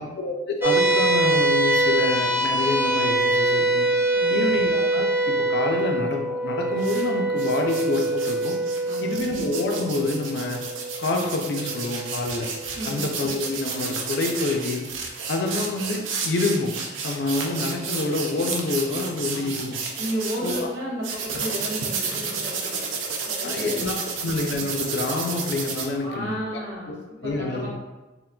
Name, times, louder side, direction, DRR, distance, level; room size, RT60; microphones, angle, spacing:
voice 1, 0.0-3.9 4.3-8.6 9.0-10.6 11.0-12.5 12.9-14.9 15.3-16.7 17.0-19.8 20.4-20.7 23.4-24.0 24.2-26.3 26.9-27.7, left 2 dB, 60° left, 2 dB, 0.4 m, -27 dB
sound 1, 0.6-13.3, right 2 dB, 10° right, 0.3 m, -24 dB
voice 2, 4.1-4.6 8.8-9.2 12.7-13.1 19.3-19.6 20.0-22.8 23.2-24.1 26.0-26.9 27.2-27.7, equal, 60° right, -4 dB, 0.8 m, -33 dB
sound 2, 6.8-7.0 7.4-20.6 21.0-25.9, right 5 dB, 85° right, 0.4 m, -31 dB
3.7 x 2.4 x 2.2 m, 1.1 s
head